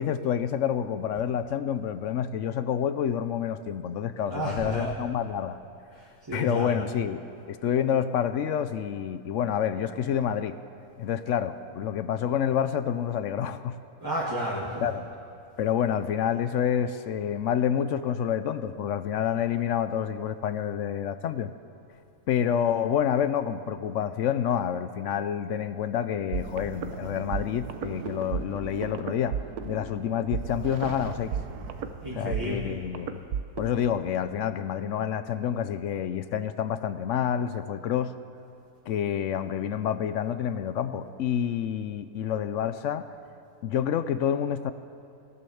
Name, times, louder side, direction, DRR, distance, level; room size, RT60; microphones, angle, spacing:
voice 1, 0.0-5.6 6.3-7.2 7.5-10.6 11.0-13.8 14.8-15.1 15.6-21.5 22.3-31.3 32.1-33.2 33.6-38.1 38.9-43.1 43.6-44.7, left 9 dB, 70° left, 12 dB, 0.8 m, -28 dB
voice 2, 4.3-4.9 5.9-6.8 14.0-15.0 32.0-32.8, right 1 dB, 15° right, -5 dB, 1.5 m, -32 dB
sound 1, 26.3-33.9, right 7 dB, 75° right, 1.2 m, -35 dB
17.5 x 11.0 x 7.0 m, 2.6 s
omnidirectional pair, 1.7 m